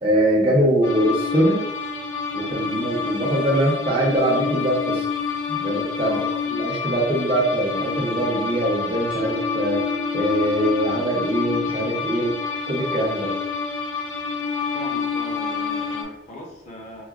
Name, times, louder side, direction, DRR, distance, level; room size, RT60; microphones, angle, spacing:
voice 1, 0.0-1.6 2.3-5.0 5.5-6.2 6.5-9.8 10.1-12.3 12.7-13.3, right 1 dB, 25° right, -3 dB, 0.7 m, -22 dB
sound 1, 0.8-16.0, left 5 dB, 80° left, 0.7 m, -28 dB
voice 2, 6.0-6.4 14.7-17.0, left 1 dB, 35° left, -2 dB, 0.8 m, -40 dB
Mallet percussion, 9.1-12.4, right 2 dB, 5° left, 0.4 m, -37 dB
4.8 x 2.2 x 2.4 m, 0.83 s
head